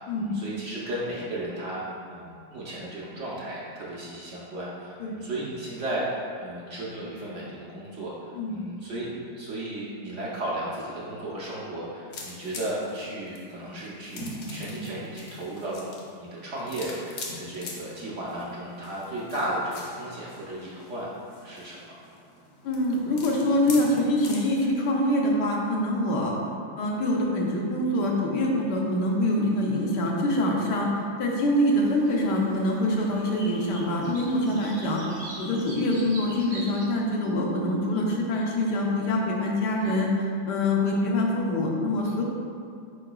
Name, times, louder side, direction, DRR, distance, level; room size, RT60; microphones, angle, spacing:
voice 1, 0.0-6.1 6.4-9.1 9.4-15.9 16.2-21.1 21.4-21.8, right 1 dB, 60° right, -6 dB, 0.8 m, -34 dB
sound 1, 12.1-24.7, left 2 dB, 60° left, 0.7 m, -42 dB
voice 2, 22.6-26.3 26.8-40.1 40.5-42.2, left 1 dB, 90° left, -1 dB, 1.3 m, -25 dB
sound 2, 31.5-36.8, right 1 dB, 40° right, 0.5 m, -44 dB
4.7 x 4.6 x 2.3 m, 2.4 s
omnidirectional pair, 1.8 m